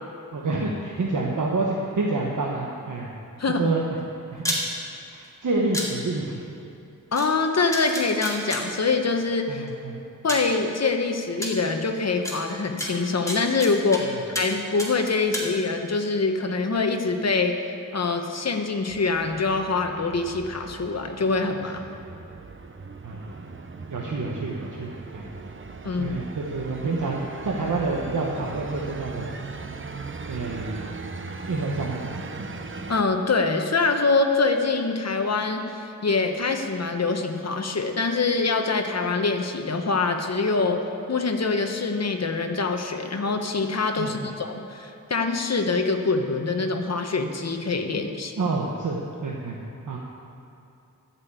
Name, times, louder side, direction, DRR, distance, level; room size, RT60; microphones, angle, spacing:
voice 1, 0.3-3.1 3.6-3.9 4.3-4.6 5.1-6.4 9.5-10.0 23.0-23.4 23.9-25.3 26.0-29.3 30.2-31.0 31.5-32.5 44.0-44.3 47.9-48.0 48.4-49.6 49.9-50.0, right 3 dB, 65° right, -2 dB, 1.2 m, -28 dB
sound 1, 4.4-4.6 5.7-5.9 7.2-7.3 7.7-8.6 9.7-9.8 10.3-10.5 11.4-11.5 12.2-12.3 12.8-14.0 14.3-14.5 14.8-15.5, equal, 10° left, 2.2 m, -29 dB
voice 2, 7.1-9.6 10.2-21.8 25.8-26.2 32.9-40.8 41.1-48.3, left 3 dB, 50° left, 5 dB, 1.1 m, -24 dB
sound 2, 18.9-33.0, right 4 dB, 35° right, 0.7 m, -39 dB
13.0 x 6.1 x 8.3 m, 2.8 s
wide cardioid pair, 105°, 34 cm